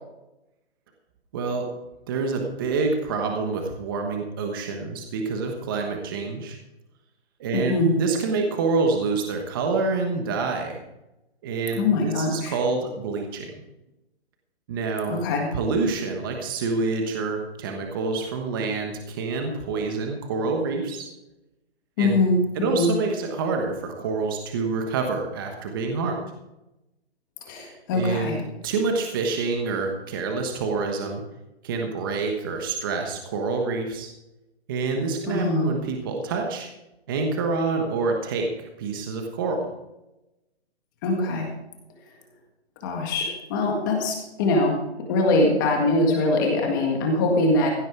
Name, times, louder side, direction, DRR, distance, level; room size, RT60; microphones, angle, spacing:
voice 1, 1.3-1.7 2.1-6.6 7.4-10.8 11.4-13.5 14.7-15.2 15.5-21.1 22.0-22.2 22.5-26.2 27.9-31.2 31.6-34.1 34.7-36.7 37.1-39.7, right 4 dB, 20° right, 3 dB, 1.2 m, -27 dB
voice 2, 7.5-7.9 11.8-12.6 15.1-15.5 22.0-22.9 27.5-28.4 35.3-35.7 41.0-41.5 42.8-44.8 45.1-47.7, left 2 dB, 20° left, 1 dB, 1.9 m, -22 dB
16.0 x 9.0 x 4.7 m, 0.93 s
hypercardioid pair, 170°, 32 cm